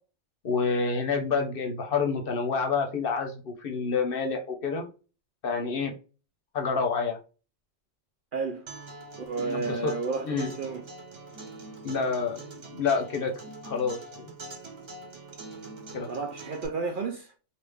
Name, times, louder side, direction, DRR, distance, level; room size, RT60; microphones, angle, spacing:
voice 1, 0.4-4.9 5.4-5.9 6.5-7.2 9.4-9.9 10.2-10.5 11.8-12.4 12.7-13.3 13.6-14.3 15.9-16.1, left 5 dB, 55° left, 0.8 m, -28 dB
voice 2, 8.3-8.7 9.2-10.8 16.1-17.3, right 4 dB, 60° right, 0.6 m, -32 dB
Acoustic guitar, 8.7-16.7, right 2 dB, 75° right, 1.5 m, -44 dB
3.3 x 2.4 x 3.4 m
omnidirectional pair, 1.2 m